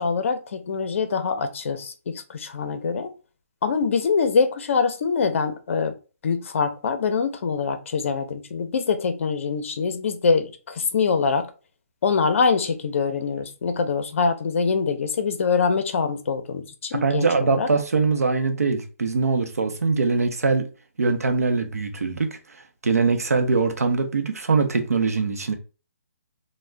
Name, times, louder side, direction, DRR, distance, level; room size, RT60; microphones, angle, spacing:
voice 1, 0.0-3.1 3.6-5.9 6.2-11.5 12.0-17.7, left 5 dB, 60° left, 0.5 m, -24 dB
voice 2, 16.9-20.7 21.0-25.5, right 4 dB, 90° right, 0.6 m, -22 dB
2.4 x 2.1 x 3.3 m
hypercardioid pair, 150°, 8 cm